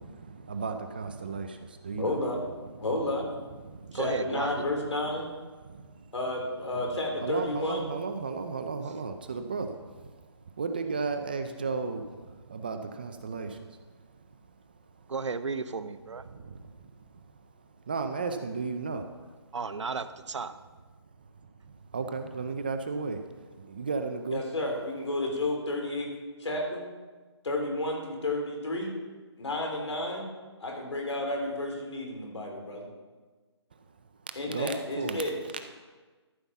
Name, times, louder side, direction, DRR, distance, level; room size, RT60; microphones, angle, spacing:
voice 1, 0.0-2.2 3.6-4.0 5.6-5.9 7.2-10.1 10.6-13.6 16.3-16.7 17.9-19.0 21.9-23.2 23.6-24.4 34.5-35.3, right 4 dB, 20° right, 7 dB, 0.4 m, -34 dB
voice 2, 2.0-2.4 2.8-3.3 3.9-5.3 6.1-7.9 24.3-26.1 26.4-26.9 27.4-29.0 29.4-30.3 30.6-32.9 34.4-35.4, left 1 dB, 80° left, 0 dB, 3.8 m, -31 dB
voice 3, 3.9-4.6 15.1-16.2 19.5-20.5, right 4 dB, 85° right, 12 dB, 0.8 m, -34 dB
13.0 x 5.6 x 7.2 m, 1.3 s
hypercardioid pair, 170°, 15 cm